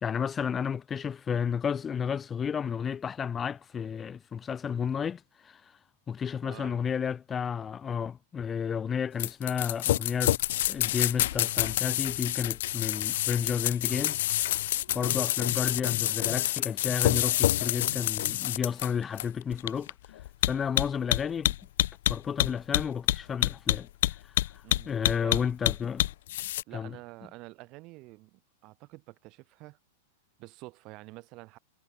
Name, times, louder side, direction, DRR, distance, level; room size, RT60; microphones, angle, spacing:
voice 1, 0.0-5.6 6.1-10.4 10.7-14.5 14.9-19.9 20.5-21.5 22.1-23.9 24.9-26.1 26.7-27.0, left 7 dB, 15° left, 0.9 m, -32 dB
voice 2, 6.4-6.8 14.9-15.2 24.6-25.6 26.7-29.8 30.4-31.6, right 22 dB, 30° right, 3.7 m, -48 dB
sound 1, 9.2-26.6, left 14 dB, 60° left, 0.5 m, -27 dB
supercardioid pair, 165°, 0 cm